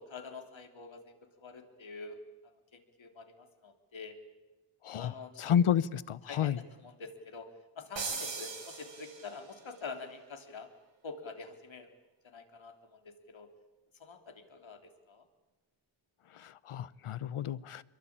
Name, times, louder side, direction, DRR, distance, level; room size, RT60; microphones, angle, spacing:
voice 1, 0.0-2.2 2.7-4.2 4.9-5.4 6.3-7.5 7.8-10.7 11.0-11.9 12.2-13.5 14.0-15.3, left 4 dB, 65° left, 5 dB, 3.4 m, -46 dB
voice 2, 4.8-6.6 16.3-17.8, left 9 dB, 80° left, 19 dB, 0.9 m, -31 dB
sound 1, 8.0-9.6, right 4 dB, 60° right, 6.1 m, -39 dB
26.5 x 22.5 x 8.8 m, 1.2 s
wide cardioid pair, 145°, 49 cm